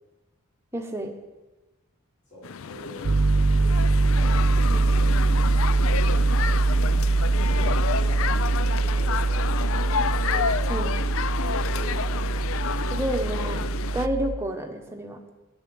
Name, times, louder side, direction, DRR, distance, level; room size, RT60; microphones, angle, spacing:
voice 1, 0.7-1.2 4.7-4.9 10.7-11.0 12.9-13.7 13.9-15.2, equal, 10° right, 3 dB, 1.1 m, -30 dB
voice 2, 2.3-3.1 3.5-5.1 6.0-7.0 7.4-10.4 11.6-12.4, equal, 35° left, -8 dB, 5.3 m, -44 dB
sound 1, 2.4-14.1, left 7 dB, 70° left, 0.4 m, -30 dB
Piano, 3.0-14.4, right 3 dB, 65° right, 0.7 m, -23 dB
10.5 x 7.1 x 9.4 m, 1.1 s
head